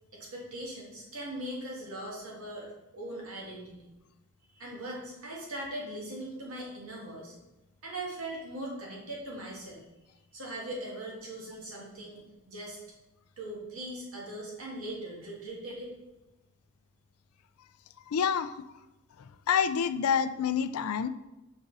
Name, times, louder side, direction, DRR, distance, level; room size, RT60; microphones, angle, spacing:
voice 1, 0.1-3.9 4.4-7.3 7.8-9.9 10.3-12.8 13.4-15.9, right 1 dB, 75° right, -3 dB, 2.1 m, -40 dB
voice 2, 18.1-18.5 19.5-21.1, left 7 dB, 80° left, 11 dB, 0.4 m, -27 dB
6.0 x 5.1 x 4.0 m, 0.97 s
head